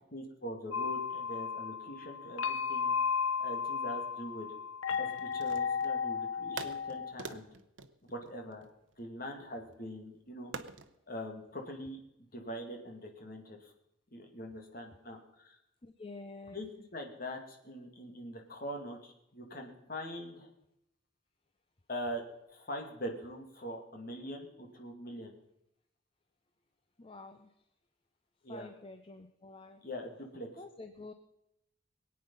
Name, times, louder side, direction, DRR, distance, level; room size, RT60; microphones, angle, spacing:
voice 1, 0.1-2.9 3.4-4.5 5.0-7.5 8.0-8.7 9.0-10.5 11.1-12.0 12.3-13.7 14.1-15.6 16.5-20.5 21.9-22.2 22.5-25.3 28.4-28.7 29.8-30.5, equal, 45° left, 2 dB, 2.2 m, -43 dB
sound 1, 0.7-7.1, left 6 dB, 80° left, 0.7 m, -34 dB
sound 2, 4.9-6.0 6.6-9.1 10.5-11.0, right 4 dB, 70° right, 0.8 m, -46 dB
voice 2, 15.8-16.6 27.0-27.5 28.5-29.8 30.6-31.1, left 3 dB, 25° left, 7 dB, 0.7 m, -48 dB
21.5 x 8.7 x 5.4 m, 0.84 s
head